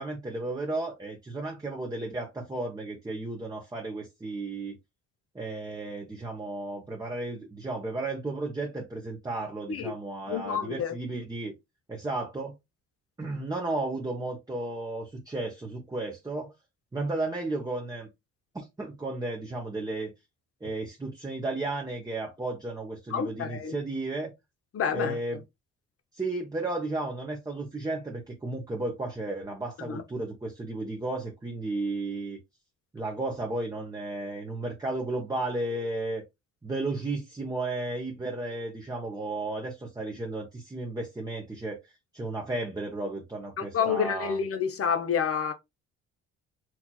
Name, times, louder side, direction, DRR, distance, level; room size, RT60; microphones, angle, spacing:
voice 1, 0.0-4.7 5.3-11.5 11.9-12.6 13.2-16.5 16.9-18.1 18.5-20.1 20.6-24.3 24.9-25.4 26.1-32.4 32.9-36.2 36.6-41.8 42.1-44.4, right 2 dB, 15° right, 1.0 m, -33 dB
voice 2, 10.3-10.9 23.1-23.8 24.7-25.2 29.9-30.0 43.6-45.5, left 7 dB, 50° left, 0.8 m, -28 dB
4.5 x 2.7 x 2.3 m
cardioid pair, 90°, 30 cm